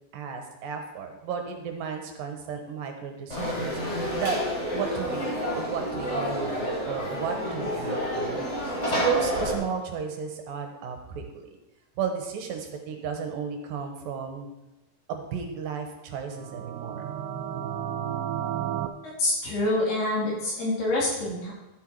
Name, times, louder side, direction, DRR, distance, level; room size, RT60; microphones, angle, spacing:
voice 1, 0.1-3.8 4.2-4.4 4.7-11.5 12.0-14.5 15.1-17.0, right 6 dB, 70° right, 4 dB, 2.7 m, -33 dB
Conversation / Crowd, 3.3-9.5, equal, 25° left, 1.8 m, -29 dB
sound 1, 16.3-18.9, right 10 dB, 90° right, 2.7 m, -32 dB
voice 2, 19.2-21.5, left 1 dB, 85° left, -5 dB, 5.5 m, -26 dB
12.5 x 8.0 x 4.7 m, 1.0 s
omnidirectional pair, 4.5 m